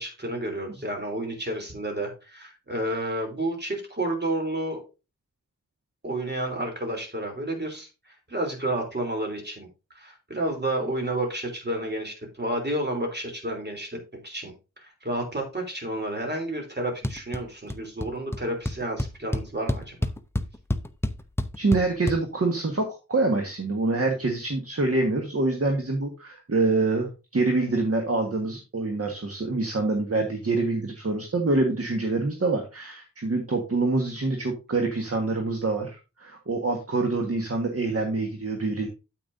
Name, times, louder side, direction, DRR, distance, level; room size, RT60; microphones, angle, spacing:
voice 1, 0.0-4.8 6.0-9.7 9.9-20.1, right 1 dB, 35° right, 2 dB, 3.4 m, -31 dB
sound 1, 17.0-17.4 17.7-18.1 18.3-18.4 18.7-22.2, left 1 dB, 10° left, 0.7 m, -27 dB
voice 2, 21.6-38.9, right 3 dB, 50° right, 3 dB, 1.5 m, -26 dB
9.0 x 8.4 x 2.7 m, 0.29 s
wide cardioid pair, 65°, 30 cm